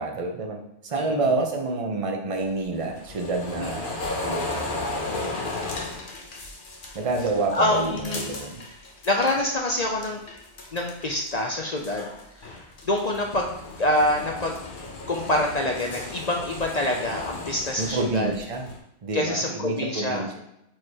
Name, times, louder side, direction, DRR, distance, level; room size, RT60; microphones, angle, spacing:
voice 1, 0.0-4.6 6.9-8.6 17.8-18.7 19.0-20.4, right 3 dB, 30° right, 2 dB, 0.6 m, -28 dB
sound 1, 2.4-9.4 9.7-11.3 11.6-18.8, left 2 dB, 40° left, 0.9 m, -35 dB
voice 2, 7.5-8.3 9.1-10.2 10.7-12.1 12.4-12.6 12.8-14.8 15.1-18.3 19.1-20.3, left 1 dB, 60° left, 0 dB, 0.4 m, -26 dB
4.7 x 4.5 x 4.8 m, 0.82 s
omnidirectional pair, 1.7 m